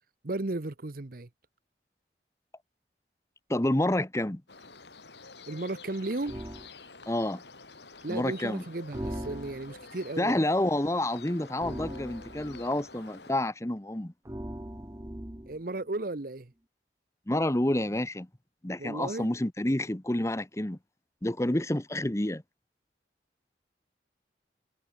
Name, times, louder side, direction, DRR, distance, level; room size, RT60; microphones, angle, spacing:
voice 1, 0.2-1.3 5.5-6.3 8.0-10.4 15.5-16.5 18.8-19.3, right 2 dB, 55° right, 1.0 m, -34 dB
voice 2, 3.5-4.4 7.1-7.4 8.1-8.6 10.2-14.1 17.3-18.3 18.6-20.8 21.2-22.4, left 1 dB, 15° left, 0.9 m, -29 dB
sound 1, 4.5-13.3, left 3 dB, 80° left, 7.4 m, -49 dB
sound 2, 6.3-6.7 8.9-9.9 11.6-12.7 14.2-15.6, right 1 dB, 15° right, 1.1 m, -39 dB
head